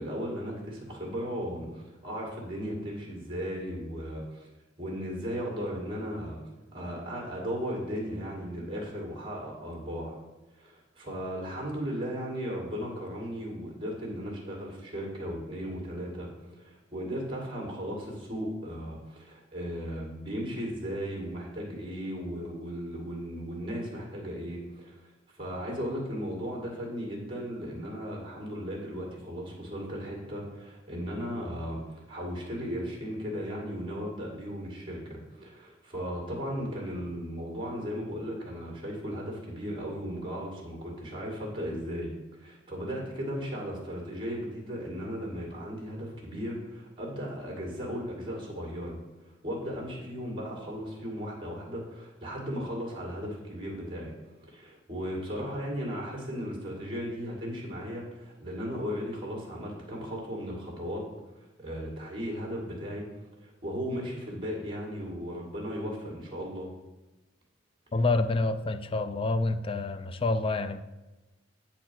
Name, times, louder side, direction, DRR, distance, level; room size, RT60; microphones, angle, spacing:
voice 1, 0.0-4.5 4.8-6.4 6.7-10.2 10.5-25.0 25.4-49.0 49.4-54.1 54.5-61.0 61.6-63.0 63.4-66.7, equal, 25° right, -1 dB, 2.2 m, -36 dB
voice 2, 67.9-70.8, left 3 dB, 30° left, 11 dB, 0.4 m, -28 dB
8.3 x 4.6 x 5.8 m, 1.1 s
head